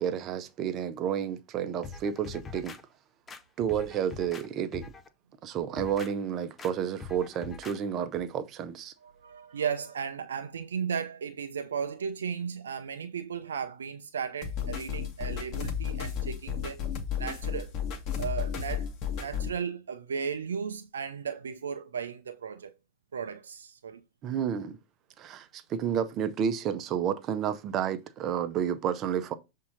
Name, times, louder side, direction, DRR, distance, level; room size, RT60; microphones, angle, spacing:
voice 1, 0.0-2.7 3.6-4.9 5.4-8.9 24.2-24.8 25.2-29.3, right 8 dB, 35° right, 0.8 m, -31 dB
sound 1, 1.8-2.8 3.3-4.5 4.7-5.1 5.6-6.1 6.6-6.7 7.0-7.8 8.1-8.3, left 4 dB, 20° left, 0.7 m, -43 dB
voice 2, 9.0-16.9 17.2-17.7 18.2-18.9 19.2-22.7 23.1-24.0, right 7 dB, 65° right, 0.5 m, -35 dB
sound 2, 14.4-19.5, left 8 dB, 40° left, 1.4 m, -33 dB
7.1 x 3.7 x 4.1 m
figure-of-eight pair, 90°, 0 cm